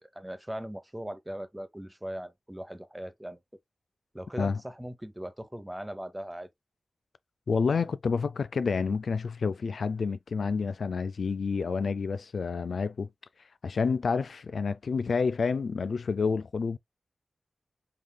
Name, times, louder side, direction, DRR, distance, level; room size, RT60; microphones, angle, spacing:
voice 1, 0.0-3.4 4.1-6.5, equal, 10° right, 0.8 m, -39 dB
voice 2, 7.5-13.1 13.6-16.8, left 5 dB, 80° left, 0.3 m, -29 dB
5.5 x 3.3 x 2.3 m
wide cardioid pair, 85°, 0 cm